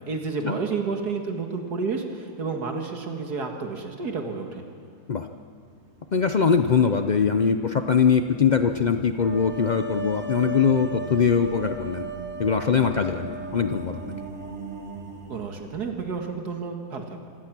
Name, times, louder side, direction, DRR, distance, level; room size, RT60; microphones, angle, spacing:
voice 1, 0.1-4.6 15.3-17.3, right 4 dB, 75° right, 3 dB, 2.3 m, -30 dB
sound 1, 1.1-1.5 2.0-2.1 5.5-16.4, right 4 dB, 45° right, 1.9 m, -43 dB
voice 2, 6.1-12.1 12.4-14.1, left 6 dB, 75° left, 7 dB, 0.4 m, -22 dB
sound 2, 9.2-15.0, right 3 dB, 15° right, 0.4 m, -36 dB
25.5 x 17.0 x 6.1 m, 2.6 s
omnidirectional pair, 1.7 m